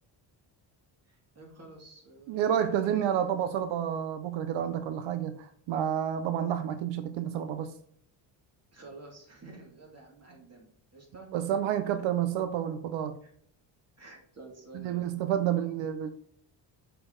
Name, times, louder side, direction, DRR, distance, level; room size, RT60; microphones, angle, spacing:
voice 1, 1.1-3.4 8.7-10.7 10.9-11.3 13.2-13.3 14.0-15.1 15.4-15.8, right 2 dB, 30° right, -1 dB, 2.3 m, -50 dB
voice 2, 2.3-7.8 11.3-13.2 14.7-16.1, right 9 dB, 85° right, 10 dB, 0.6 m, -29 dB
6.7 x 4.5 x 3.7 m, 0.64 s
cardioid pair, 100°, 46 cm